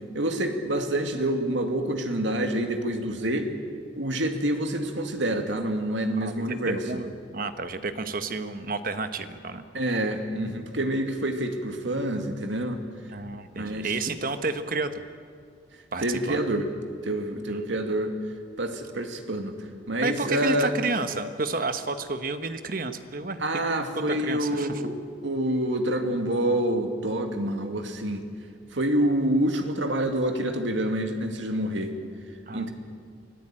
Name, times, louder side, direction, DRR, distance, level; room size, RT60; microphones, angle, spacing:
voice 1, 0.1-3.5 4.0-6.8 9.7-12.8 13.6-13.9 16.0-16.7 17.0-18.1 18.6-19.5 19.9-20.7 23.4-28.2 28.7-31.9 32.5-32.7, right 1 dB, 75° right, 5 dB, 2.2 m, -27 dB
voice 2, 6.2-9.6 13.1-15.0 15.9-16.4 17.5-17.6 20.0-23.4 23.7-23.8 24.2-24.8 32.5-32.7, right 3 dB, 45° right, 9 dB, 1.2 m, -31 dB
25.0 x 15.5 x 8.9 m, 2.2 s
head